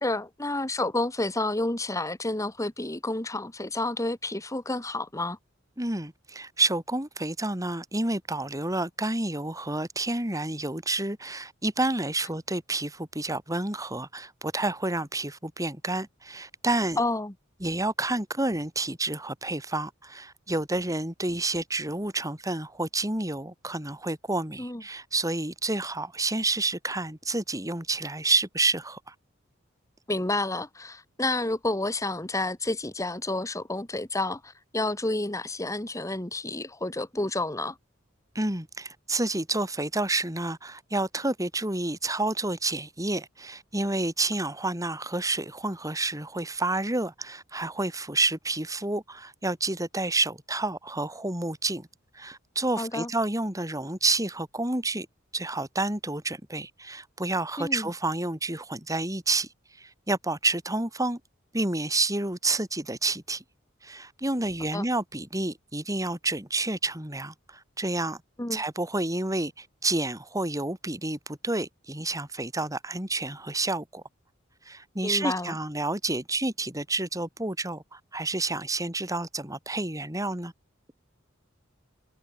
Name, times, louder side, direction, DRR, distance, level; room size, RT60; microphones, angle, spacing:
voice 1, 0.0-5.4 17.0-17.3 24.6-24.8 30.1-37.8 52.8-53.1 57.6-57.9 64.7-64.8 68.4-68.6 75.0-75.6, left 2 dB, 15° left, 1.6 m, -30 dB
voice 2, 5.8-17.0 17.6-29.1 38.3-51.9 52.1-55.1 55.3-59.5 59.8-61.2 61.5-63.4 63.8-68.2 68.5-74.0 74.7-80.5, right 2 dB, 15° right, 5.6 m, -29 dB
head